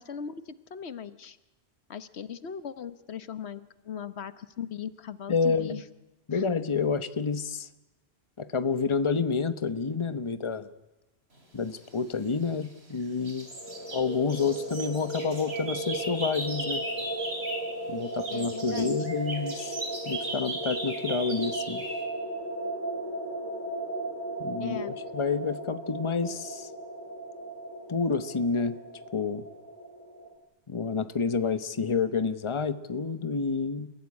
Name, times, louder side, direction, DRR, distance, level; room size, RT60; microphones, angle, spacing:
voice 1, 0.0-1.4 1.9-5.8 6.3-6.4 18.3-18.9 24.6-24.9, left 8 dB, 80° left, 13 dB, 1.3 m, -39 dB
voice 2, 5.3-5.8 6.3-7.7 8.4-10.7 11.5-13.5 13.9-16.8 17.9-21.8 24.4-26.7 27.9-28.8 29.1-29.4 30.7-33.9, left 5 dB, 30° left, 12 dB, 1.0 m, -29 dB
sound 1, 12.1-12.9 13.2-17.8 18.0-22.0, right 1 dB, 70° right, 4.6 m, -38 dB
sound 2, 13.4-30.3, right 1 dB, 10° left, 3.3 m, -36 dB
29.5 x 16.5 x 9.7 m, 1.1 s
omnidirectional pair, 1.1 m